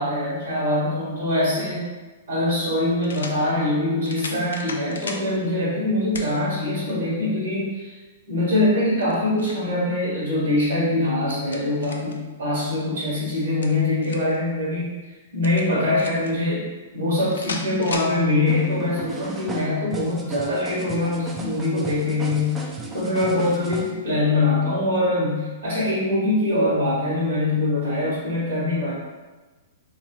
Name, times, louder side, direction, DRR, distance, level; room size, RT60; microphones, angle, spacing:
voice 1, 0.0-1.9 2.3-8.0 8.3-14.9 15.3-16.6 16.9-22.6 22.9-28.9, left 2 dB, 80° right, -7 dB, 1.3 m, -23 dB
sound 1, 1.8-1.9 3.0-3.4 4.0-5.3 6.1-6.3 6.9-7.0 8.9-9.7 11.0-12.2 13.4-14.4 15.4-16.3 17.3-18.1, left 4 dB, 75° left, 0.3 m, -35 dB
Latin Styled Street Percussion, 18.5-23.9, right 3 dB, 15° right, 0.4 m, -35 dB
2.8 x 2.4 x 3.1 m, 1.3 s
hypercardioid pair, 115°, 0 cm